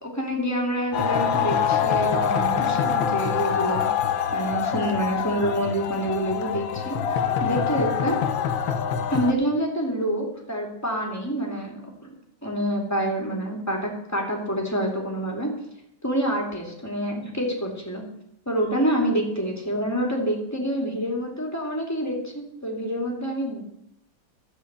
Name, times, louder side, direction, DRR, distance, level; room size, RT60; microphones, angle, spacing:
voice 1, 0.0-3.8 4.3-7.0 7.4-8.2 9.1-12.1 12.4-15.5 16.0-18.0 18.5-23.6, equal, 10° left, -1 dB, 2.6 m, -27 dB
sound 1, 0.9-9.3, left 7 dB, 75° left, 1.7 m, -25 dB
14.0 x 5.0 x 8.2 m, 0.78 s
omnidirectional pair, 2.2 m